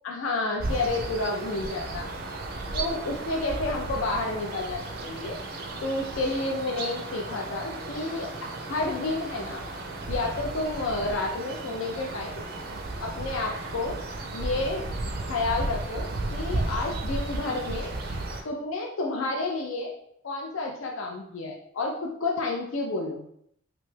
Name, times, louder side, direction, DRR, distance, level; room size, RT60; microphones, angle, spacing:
voice 1, 0.0-2.3 2.7-5.4 5.8-9.6 10.1-12.4 13.0-14.0 14.3-14.9 15.3-17.9 18.4-19.9 20.2-23.3, left 2 dB, 70° left, 0 dB, 0.4 m, -30 dB
sound 1, 0.6-18.4, right 2 dB, 45° right, 0.4 m, -34 dB
2.9 x 2.2 x 3.2 m, 0.71 s
head